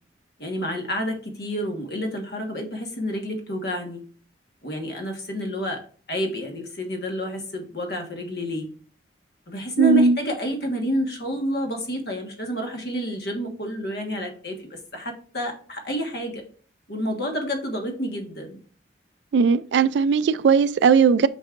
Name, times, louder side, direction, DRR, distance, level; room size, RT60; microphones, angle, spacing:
voice 1, 0.4-4.0 4.6-5.8 6.1-8.7 9.5-16.4 16.9-18.6, equal, 60° left, 1.5 m, -29 dB
voice 2, 9.8-10.2 19.3-21.3, right 5 dB, 75° right, 0.3 m, -18 dB
8.1 x 5.4 x 2.5 m
head